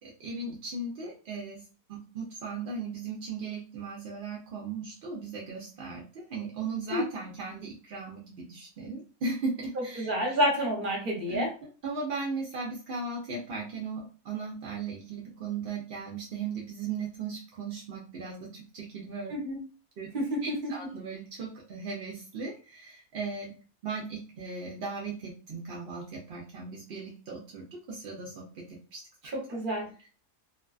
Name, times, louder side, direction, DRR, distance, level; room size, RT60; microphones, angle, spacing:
voice 1, 0.0-1.6 1.9-10.4 11.3-11.5 11.8-19.3 20.0-20.1 20.4-23.5 23.8-29.0 29.5-29.6, right 4 dB, 65° right, -3 dB, 0.6 m, -37 dB
voice 2, 9.8-11.5 19.3-19.6 20.1-20.7 29.3-29.9, equal, 40° right, 0 dB, 0.9 m, -29 dB
2.5 x 2.3 x 2.3 m, 0.36 s
omnidirectional pair, 1.6 m